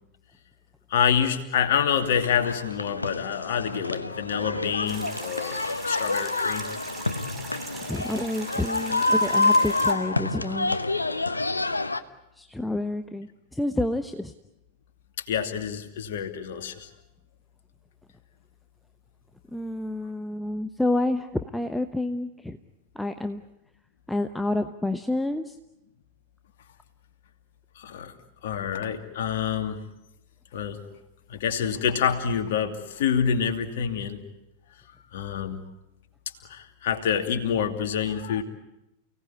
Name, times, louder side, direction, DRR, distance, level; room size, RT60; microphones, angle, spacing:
voice 1, 0.9-6.6 15.3-16.9 27.8-28.1 28.4-29.8 30.5-30.8 31.3-34.2 35.1-35.7 36.5-38.4, left 7 dB, 55° left, 5 dB, 2.7 m, -27 dB
sound 1, 2.0-12.0, left 2 dB, 80° left, 1.1 m, -27 dB
sound 2, 4.9-9.9, right 3 dB, 20° right, 7.3 m, -41 dB
voice 2, 7.8-10.8 12.4-14.3 19.5-22.6 22.9-23.4 24.1-25.6, left 2 dB, 5° left, 8 dB, 1.0 m, -29 dB
30.0 x 18.0 x 9.6 m, 0.90 s
figure-of-eight pair, 90°, 0 cm